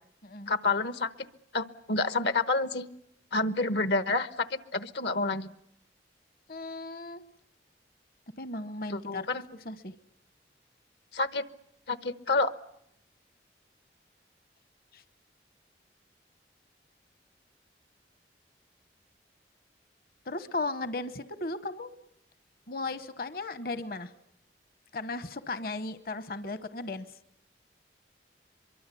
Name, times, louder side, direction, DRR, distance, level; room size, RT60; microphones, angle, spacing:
voice 1, 0.5-1.1 1.5-2.9 3.3-5.5 8.9-9.4 11.1-11.4 11.9-12.5, left 3 dB, 75° left, 13 dB, 1.1 m, -28 dB
voice 2, 6.5-7.2 8.4-9.9 14.9-15.0 20.3-21.9 22.7-24.1 24.9-27.2, left 2 dB, 55° left, 13 dB, 1.0 m, -36 dB
23.5 x 23.0 x 8.4 m, 0.76 s
head